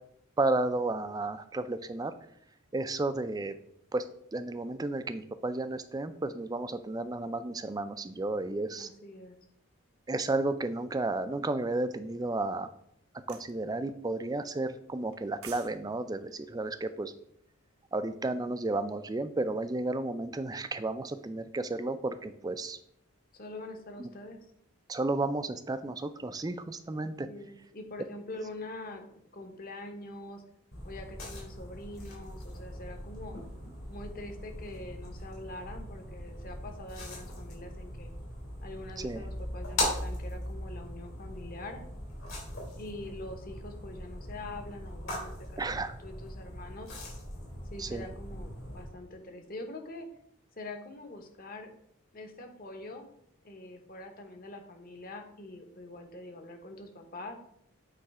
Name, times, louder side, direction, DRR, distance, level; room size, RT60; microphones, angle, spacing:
voice 1, 0.4-2.1 2.7-3.5 3.9-4.0 4.3-8.9 10.1-12.7 13.3-17.1 17.9-22.8 24.0-24.1 24.9-27.3 39.0-39.2 45.6-45.9 47.8-48.1, right 2 dB, 15° right, 10 dB, 0.3 m, -32 dB
voice 2, 8.8-9.4 23.3-24.5 27.0-30.4 30.8-33.4 33.9-38.1 38.6-41.8 42.8-46.9 47.7-50.1 50.6-51.7 52.1-53.1 53.4-57.4, left 2 dB, 40° left, 5 dB, 1.0 m, -44 dB
sound 1, 13.3-13.5 15.1-15.7 16.0-16.2, right 8 dB, 85° right, 0.9 m, -47 dB
sound 2, 30.7-48.8, left 1 dB, 70° left, 3.0 m, -40 dB
8.4 x 3.2 x 4.8 m, 0.71 s
head